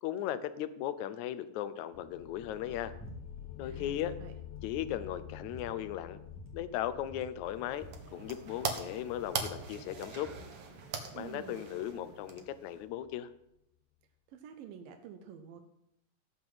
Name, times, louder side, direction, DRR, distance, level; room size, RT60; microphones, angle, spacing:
voice 1, 0.0-2.9 3.6-4.1 4.6-6.2 6.5-10.3 11.2-13.3, left 11 dB, 70° left, 12 dB, 1.9 m, -37 dB
sound 1, 1.9-13.3, left 10 dB, 90° left, 1.5 m, -50 dB
sound 2, 2.9-3.2 3.4-4.0 4.3-4.4 4.7-5.7 6.3-6.5 6.7-6.8 7.0-8.7 9.0-10.5, equal, 5° left, 2.4 m, -50 dB
voice 2, 3.6-4.3 11.1-11.7 14.3-15.6, right 7 dB, 85° right, 6 dB, 2.7 m, -49 dB
sound 3, 7.4-12.8, right 5 dB, 55° right, 1.8 m, -41 dB
17.0 x 5.9 x 7.7 m, 0.81 s
omnidirectional pair, 4.0 m